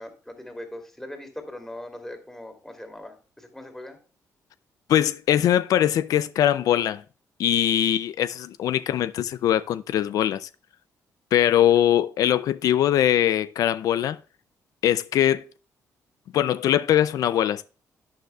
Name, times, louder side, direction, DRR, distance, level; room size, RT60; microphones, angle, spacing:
voice 1, 0.0-4.0, left 1 dB, 10° left, 2.7 m, -40 dB
voice 2, 4.9-7.0 7.4-10.5 11.3-14.2 14.8-15.4 16.3-17.6, left 11 dB, 80° left, 0.4 m, -21 dB
11.0 x 9.2 x 2.3 m
cardioid pair, 110°, 6 cm